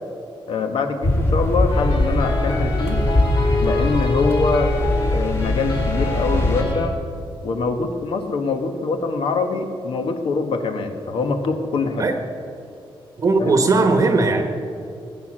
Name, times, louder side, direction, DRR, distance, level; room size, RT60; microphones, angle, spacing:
voice 1, 0.5-3.0 3.6-4.7 5.1-6.9 7.4-12.0 13.4-13.5, left 4 dB, 75° left, 6 dB, 1.4 m, -24 dB
sound 1, 1.0-6.6, left 1 dB, 30° left, 2.0 m, -21 dB
sound 2, 1.7-6.9, left 1 dB, 55° left, 2.7 m, -26 dB
voice 2, 13.2-14.4, right 3 dB, 35° right, 5 dB, 1.0 m, -17 dB
18.0 x 9.4 x 6.3 m, 2.6 s
wide cardioid pair, 170°, 9 cm